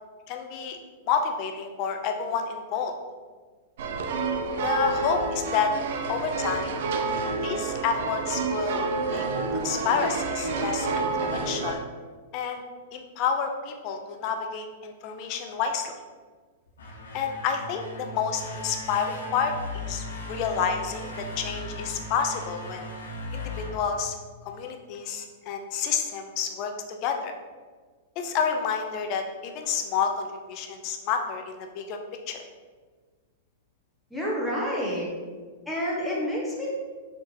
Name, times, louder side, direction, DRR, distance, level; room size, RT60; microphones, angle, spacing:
voice 1, 0.3-0.8 1.1-2.9 4.6-5.7 6.1-6.7 7.4-9.2 9.5-11.8 12.3-12.6 12.9-15.9 17.1-22.8 23.3-24.1 24.5-27.3 28.2-32.0 32.3-32.4, left 6 dB, 45° left, 4 dB, 0.6 m, -29 dB
sound 1, 3.8-11.7, right 4 dB, 65° right, 0.5 m, -29 dB
sound 2, 16.7-24.6, left 1 dB, 80° left, 0.8 m, -38 dB
voice 2, 34.1-35.1 35.7-36.7, equal, 5° left, -6 dB, 1.3 m, -28 dB
4.3 x 3.9 x 3.0 m, 1.5 s
hypercardioid pair, 115°, 0 cm